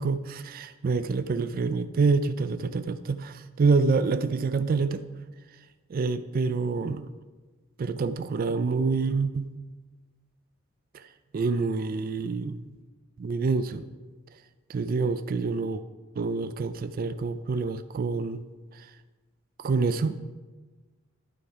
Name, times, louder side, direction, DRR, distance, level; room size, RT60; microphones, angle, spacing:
voice 1, 0.0-5.0 5.9-7.1 7.8-9.5 10.9-11.0 11.3-12.6 13.2-13.8 14.7-15.8 16.2-18.4 18.8-18.9 19.6-20.2, right 4 dB, 45° right, 11 dB, 0.4 m, -27 dB
11.5 x 4.8 x 5.0 m, 1.3 s
head